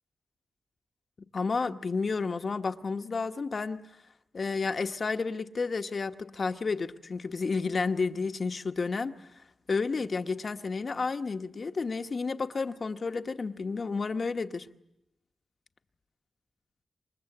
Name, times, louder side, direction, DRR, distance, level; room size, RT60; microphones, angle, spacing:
voice 1, 1.2-3.9 4.3-9.3 9.7-14.7, left 4 dB, 45° left, 8 dB, 1.1 m, -31 dB
28.0 x 24.5 x 7.9 m, 0.87 s
wide cardioid pair, 120°, 0 cm